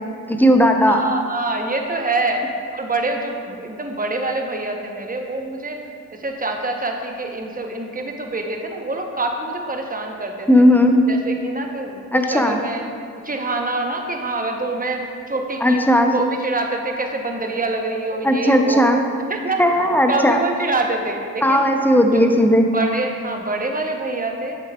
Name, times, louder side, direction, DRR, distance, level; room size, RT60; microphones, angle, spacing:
voice 1, 0.3-1.0 10.5-11.0 12.1-12.6 15.6-16.1 18.2-19.0 19.6-20.4 21.4-22.7, equal, 5° left, 4 dB, 0.6 m, -15 dB
voice 2, 0.9-2.4 2.7-5.8 6.1-10.5 11.1-12.8 13.2-18.8 19.3-19.6 20.1-21.7 22.1-22.2 22.7-24.6, right 2 dB, 25° right, 3 dB, 0.9 m, -26 dB
6.9 x 6.7 x 2.4 m, 2.3 s
supercardioid pair, 40°, 37 cm